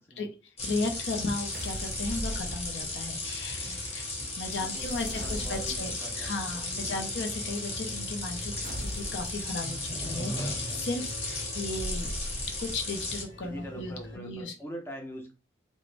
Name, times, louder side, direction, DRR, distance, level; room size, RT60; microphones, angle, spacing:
voice 1, 0.6-4.1 4.4-12.1 12.6-14.5, left 3 dB, 70° left, 4 dB, 0.5 m, -35 dB
sound 1, 0.6-13.2, left 2 dB, 35° left, 0.8 m, -35 dB
sound 2, 1.5-3.1 4.6-6.1 8.6-9.5 11.8-12.9, equal, 50° right, 0.5 m, -39 dB
voice 2, 4.6-6.3 6.7-7.1 13.4-15.3, equal, 15° left, 1 dB, 0.5 m, -43 dB
sound 3, 6.0-14.2, left 1 dB, 50° left, 1.0 m, -46 dB
2.4 x 2.1 x 3.1 m, 0.33 s
head